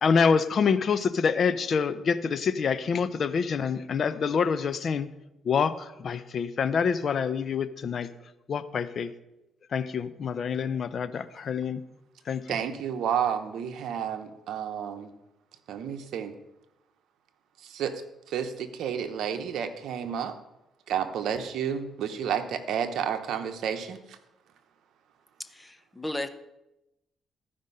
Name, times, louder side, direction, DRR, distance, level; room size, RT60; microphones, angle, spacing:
voice 1, 0.0-5.1 5.4-8.1 8.5-9.1 9.7-11.8 12.3-12.4, left 6 dB, 55° left, 13 dB, 0.6 m, -26 dB
voice 2, 12.5-15.1 15.7-16.3 17.6-17.9 18.3-20.4 20.9-24.2, right 8 dB, 75° right, 8 dB, 0.9 m, -31 dB
voice 3, 25.4-26.3, left 1 dB, 15° left, 9 dB, 0.8 m, -35 dB
13.5 x 5.2 x 5.5 m, 0.92 s
cardioid pair, 90°, 0 cm